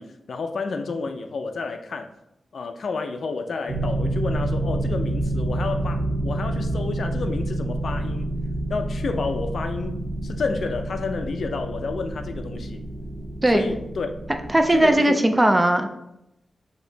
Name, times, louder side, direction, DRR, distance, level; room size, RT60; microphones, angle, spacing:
voice 1, 0.0-2.1 2.5-8.3 8.7-12.8 13.5-14.1 14.7-15.2, left 4 dB, 65° left, 7 dB, 0.4 m, -30 dB
sound 1, 3.7-14.9, right 1 dB, 60° right, 0.7 m, -28 dB
voice 2, 14.5-15.9, right 1 dB, 15° right, 6 dB, 0.4 m, -18 dB
6.2 x 2.9 x 2.7 m, 0.85 s
wide cardioid pair, 130°, 0 cm